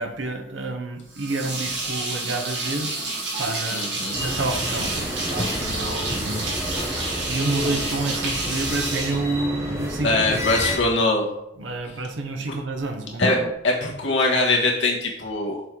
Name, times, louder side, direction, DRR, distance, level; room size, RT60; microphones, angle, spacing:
voice 1, 0.0-6.7 7.3-10.5 11.6-13.5, right 2 dB, 85° right, 5 dB, 0.9 m, -29 dB
sound 1, 1.1-9.9, right 2 dB, 65° right, 2.0 m, -29 dB
voice 2, 3.7-4.2 10.0-11.3 13.2-13.4 13.6-15.6, left 2 dB, 75° left, -2 dB, 1.6 m, -22 dB
sound 2, 4.1-10.8, equal, 15° right, 1.1 m, -31 dB
sound 3, 5.4-8.3 13.2-13.5, left 2 dB, 20° left, 0.3 m, -34 dB
6.5 x 3.8 x 4.5 m, 0.87 s
head